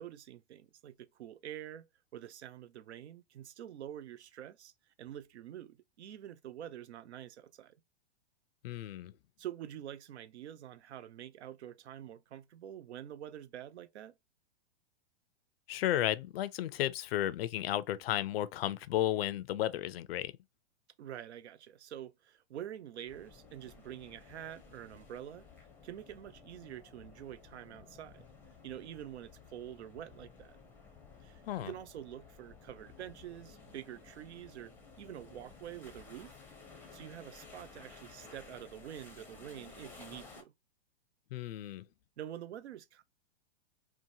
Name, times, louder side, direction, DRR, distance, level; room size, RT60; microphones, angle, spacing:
voice 1, 0.0-4.7 5.0-7.8 9.4-14.2 21.0-25.5 25.8-28.3 28.6-30.6 31.2-36.3 36.9-40.5 42.2-43.0, right 11 dB, 85° right, 0.5 m, -47 dB
voice 2, 8.6-9.1 15.7-20.3 31.5-31.7 41.3-41.8, left 13 dB, 65° left, 0.4 m, -33 dB
sound 1, 23.1-40.4, left 5 dB, 5° left, 0.5 m, -55 dB
2.8 x 2.2 x 2.6 m
hypercardioid pair, 135°, 32 cm